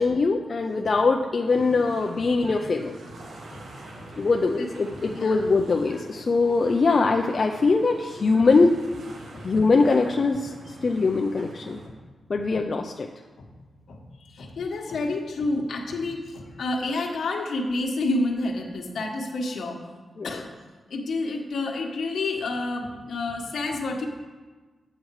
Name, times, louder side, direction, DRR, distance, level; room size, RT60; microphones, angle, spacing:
voice 1, 0.0-2.9 4.2-8.8 9.4-11.8 12.3-13.1 20.2-20.4, left 3 dB, 45° left, 3 dB, 0.5 m, -22 dB
sound 1, 1.5-11.9, right 2 dB, 85° right, 1.5 m, -44 dB
voice 2, 5.1-5.5 8.4-8.5 9.3-9.4 13.4-13.5 13.9-19.9 20.2-20.6 20.9-24.1, left 2 dB, 75° left, 2 dB, 1.3 m, -29 dB
8.7 x 7.6 x 4.8 m, 1.3 s
wide cardioid pair, 120°, 0 cm